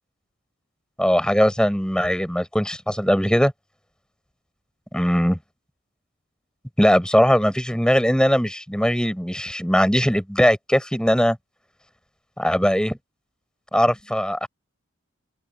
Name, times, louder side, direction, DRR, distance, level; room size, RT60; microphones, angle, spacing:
voice 1, 1.0-3.5 4.9-5.4 6.8-11.4 12.4-13.0 13.7-14.5, equal, 5° left, 6.2 m, -20 dB
open air
head